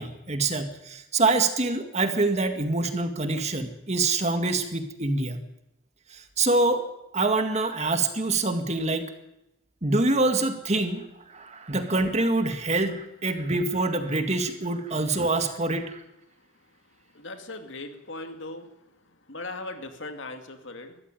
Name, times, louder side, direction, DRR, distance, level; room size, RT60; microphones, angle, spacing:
voice 1, 0.0-5.4 6.1-6.8 7.1-9.1 9.8-16.0, right 2 dB, 30° right, 7 dB, 2.0 m, -25 dB
voice 2, 17.1-18.7 19.3-21.0, left 2 dB, 60° left, 7 dB, 2.5 m, -38 dB
22.5 x 14.0 x 9.2 m, 0.88 s
head